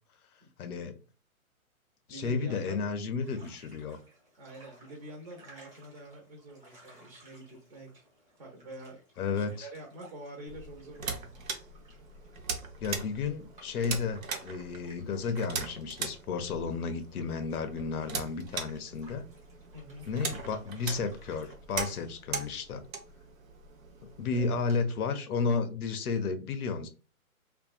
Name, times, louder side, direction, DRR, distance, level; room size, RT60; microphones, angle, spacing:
voice 1, 0.6-0.9 2.1-4.0 9.2-9.7 12.8-19.3 20.1-22.9 24.0-26.9, left 5 dB, 85° left, 0.6 m, -32 dB
voice 2, 2.1-2.8 4.4-8.0 8.4-9.0 9.4-11.4 19.7-20.0 24.3-24.6, right 1 dB, 45° right, 0.9 m, -46 dB
sound 1, 3.2-21.5, right 1 dB, 15° right, 1.0 m, -60 dB
sound 2, 10.5-24.7, right 5 dB, 70° right, 0.7 m, -40 dB
2.5 x 2.2 x 2.4 m
hypercardioid pair, 140°, 43 cm